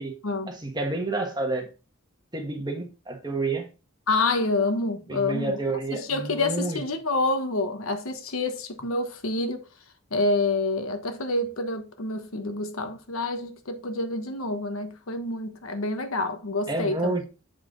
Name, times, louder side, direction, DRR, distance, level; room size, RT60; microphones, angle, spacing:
voice 1, 0.5-1.7 2.3-3.7 5.1-6.8 16.7-17.2, right 2 dB, 20° right, 1.4 m, -29 dB
voice 2, 4.1-5.6 5.9-9.6 10.1-17.1, left 2 dB, 85° left, 1.2 m, -27 dB
7.7 x 4.7 x 3.9 m
head